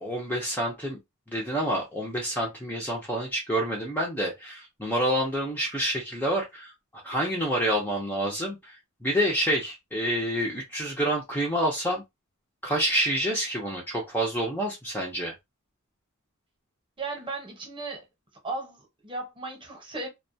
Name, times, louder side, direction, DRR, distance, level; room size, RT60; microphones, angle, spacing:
voice 1, 0.0-1.0 1.3-6.7 7.0-8.8 9.0-12.0 12.6-15.3, right 1 dB, 10° left, 0.5 m, -28 dB
voice 2, 17.0-18.0 18.4-20.1, right 3 dB, 25° right, 0.9 m, -36 dB
2.2 x 2.2 x 2.6 m
head